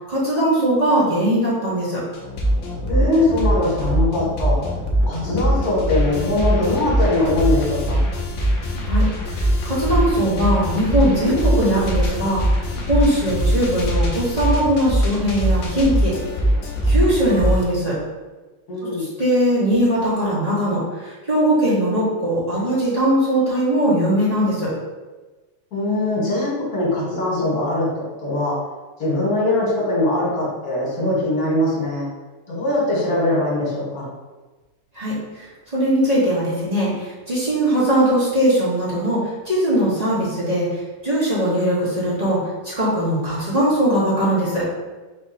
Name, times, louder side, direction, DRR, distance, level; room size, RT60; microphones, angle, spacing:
voice 1, 0.1-2.0 8.9-9.0 9.6-12.4 12.9-16.1 16.9-17.9 19.0-24.7 34.9-35.1 35.7-39.2 39.4-40.7 41.0-42.4 42.6-44.6, right 1 dB, 35° right, -9 dB, 0.6 m, -20 dB
sound 1, 2.1-17.6, equal, 80° left, 0.7 m, -22 dB
voice 2, 2.9-4.6 5.1-8.0 18.7-19.1 25.7-27.9 28.2-28.5 29.0-32.1 32.5-34.1, left 2 dB, 45° left, -6 dB, 2.0 m, -21 dB
4.7 x 2.6 x 4.0 m, 1.2 s
omnidirectional pair, 2.4 m